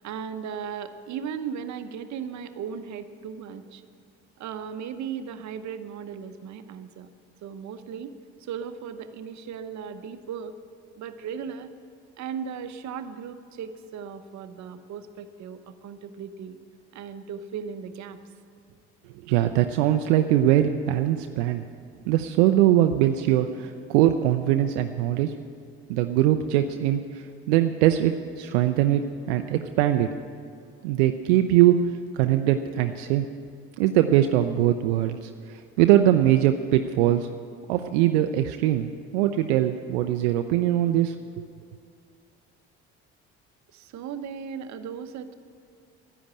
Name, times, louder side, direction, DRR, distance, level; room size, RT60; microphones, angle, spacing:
voice 1, 0.0-3.8 4.4-7.1 7.4-8.1 8.4-10.5 10.9-11.7 12.2-16.6 16.9-18.2 43.7-45.3, right 7 dB, 55° right, 9 dB, 1.0 m, -36 dB
voice 2, 19.3-21.6 22.1-25.3 25.9-30.1 30.8-33.3 33.8-37.3 37.7-41.4, right 12 dB, 80° right, 7 dB, 0.6 m, -22 dB
11.0 x 10.5 x 8.8 m, 2.3 s
hypercardioid pair, 60°, 33 cm